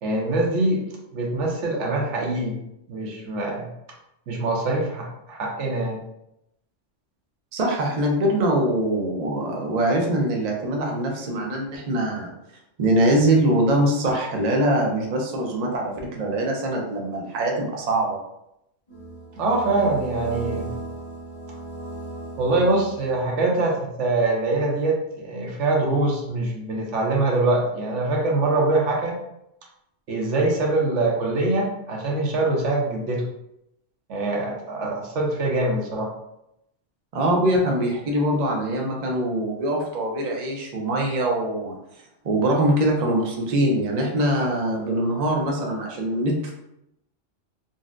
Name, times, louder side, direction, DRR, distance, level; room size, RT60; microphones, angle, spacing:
voice 1, 0.0-0.8 1.1-2.6 2.9-3.7 4.3-6.0 19.4-20.7 22.4-29.2 30.1-33.2 34.1-36.1, right 2 dB, 75° right, -1 dB, 1.0 m, -23 dB
voice 2, 7.5-12.3 12.8-18.2 37.1-41.8 42.2-46.5, right 1 dB, 45° right, 0 dB, 0.5 m, -23 dB
sound 1, 18.9-23.5, right 2 dB, 40° left, 0.9 m, -36 dB
3.9 x 2.1 x 2.4 m, 0.82 s
omnidirectional pair, 1.3 m